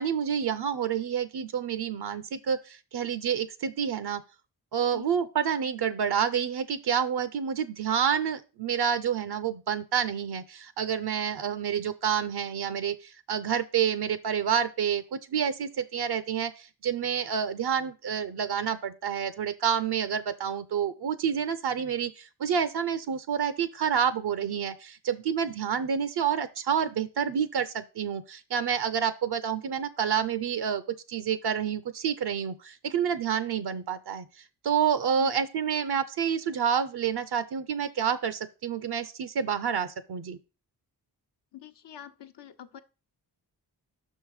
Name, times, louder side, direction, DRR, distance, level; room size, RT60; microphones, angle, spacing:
voice 1, 0.0-4.2 4.7-30.8 31.1-40.4, right 8 dB, 70° right, 0.6 m, -28 dB
voice 2, 41.5-42.8, left 11 dB, 85° left, 0.7 m, -45 dB
6.0 x 5.4 x 4.8 m
wide cardioid pair, 95°, 40 cm